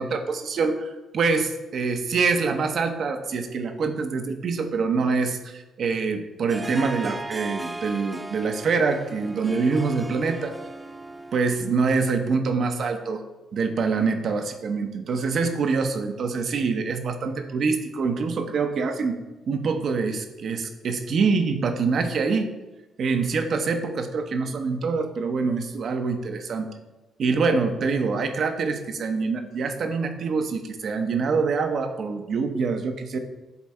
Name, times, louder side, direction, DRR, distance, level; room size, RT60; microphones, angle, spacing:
voice 1, 0.0-10.4 11.3-13.2 13.5-19.2 19.5-22.5 23.0-26.7 27.2-33.2, right 4 dB, 60° right, 7 dB, 0.7 m, -25 dB
Harp, 6.5-12.0, right 2 dB, 15° right, 0.4 m, -37 dB
8.2 x 3.2 x 4.3 m, 1.1 s
cardioid pair, 90°, 0 cm